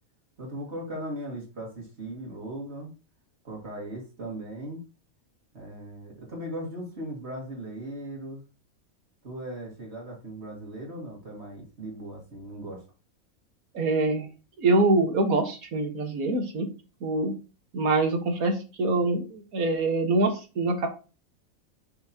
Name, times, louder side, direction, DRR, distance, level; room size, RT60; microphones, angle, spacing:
voice 1, 0.4-2.9 3.4-4.8 5.5-8.4 9.2-12.8, right 1 dB, 50° right, -2 dB, 2.4 m, -38 dB
voice 2, 13.7-14.3 14.6-16.7 17.0-17.4 17.7-20.9, right 2 dB, 80° right, 5 dB, 1.8 m, -24 dB
6.9 x 6.2 x 2.8 m, 0.32 s
omnidirectional pair, 1.5 m